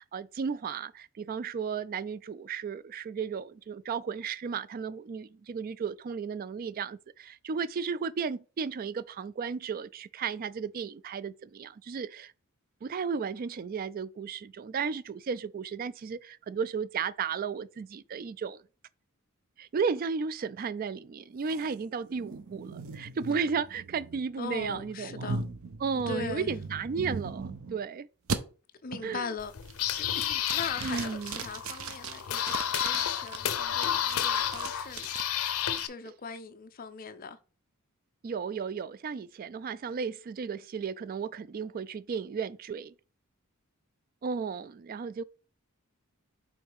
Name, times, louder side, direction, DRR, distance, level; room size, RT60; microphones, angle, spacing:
voice 1, 0.0-12.3 12.8-18.6 19.6-25.4 25.8-28.1 29.0-29.3 30.8-31.4 38.2-42.9 44.2-45.2, right 5 dB, 40° right, 0.3 m, -34 dB
sound 1, 21.5-27.8 28.3-28.4 28.9-29.2 29.6-30.1 30.4-33.4 33.8-35.8, right 4 dB, 70° right, 0.7 m, -39 dB
voice 2, 24.4-25.4 25.9-26.5 28.8-29.5 30.0-35.1 35.8-37.4, left 5 dB, 40° left, 0.5 m, -40 dB
sound 2, 29.4-35.9, left 9 dB, 80° left, 0.6 m, -31 dB
5.4 x 3.8 x 4.7 m
head